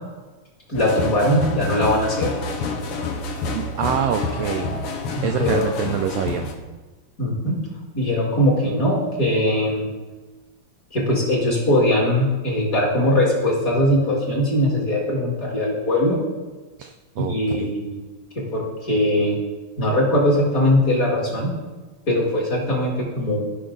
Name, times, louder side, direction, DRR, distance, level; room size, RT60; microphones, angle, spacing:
sound 1, 0.7-6.5, left 3 dB, 65° left, 1.6 m, -28 dB
voice 1, 0.7-2.3 5.1-5.7 7.2-7.6 7.9-9.9 10.9-16.2 17.2-18.0 18.4-19.4 19.8-21.5 22.1-23.5, left 1 dB, 30° left, -4 dB, 2.1 m, -20 dB
voice 2, 3.5-4.7 5.2-6.5 16.8-17.7, right 9 dB, 85° right, 5 dB, 1.4 m, -26 dB
13.0 x 5.9 x 3.9 m, 1.3 s
omnidirectional pair, 3.4 m